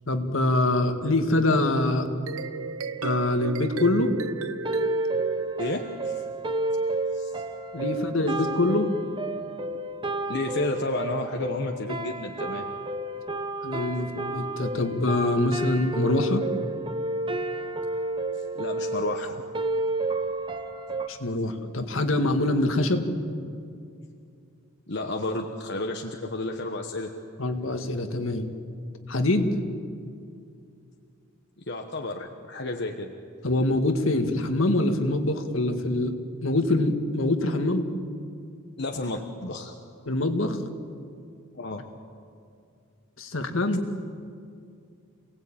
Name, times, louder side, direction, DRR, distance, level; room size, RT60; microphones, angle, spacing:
voice 1, 0.1-2.1 3.0-4.1 7.7-8.9 13.6-16.4 21.1-23.1 27.4-28.5 29.1-29.5 33.4-36.2 36.4-37.9 40.1-40.6 43.2-43.9, left 2 dB, 70° left, 6 dB, 1.8 m, -24 dB
sound 1, 2.1-6.4, right 6 dB, 90° right, 0.8 m, -34 dB
sound 2, 4.6-21.1, right 2 dB, 25° right, 1.1 m, -31 dB
voice 2, 5.6-6.2 7.1-7.3 10.3-12.7 18.5-19.4 24.9-27.1 28.9-29.0 31.6-33.1 38.8-39.8 41.5-41.9, left 2 dB, 55° left, 3 dB, 1.2 m, -31 dB
28.0 x 18.5 x 8.8 m, 2.4 s
head